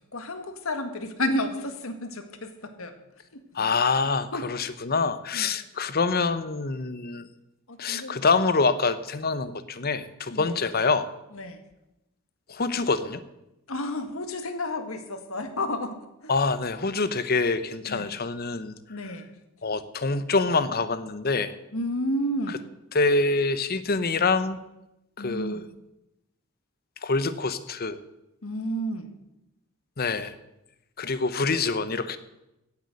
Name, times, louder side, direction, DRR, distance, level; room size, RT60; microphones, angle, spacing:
voice 1, 0.1-2.9 3.3-3.7 4.3-4.5 5.3-5.5 7.7-8.2 10.3-10.6 11.3-11.6 13.7-16.0 16.2-16.3 17.9-18.1 18.9-19.3 21.7-22.6 25.2-25.6 28.4-29.1, left 1 dB, 75° left, 8 dB, 1.7 m, -31 dB
voice 2, 3.5-7.3 7.8-11.1 12.5-13.2 16.3-18.7 19.6-21.5 22.9-24.6 25.2-25.6 27.0-28.0 30.0-30.3 31.0-32.2, left 4 dB, 45° left, 13 dB, 0.9 m, -25 dB
16.5 x 8.4 x 6.5 m, 0.90 s
head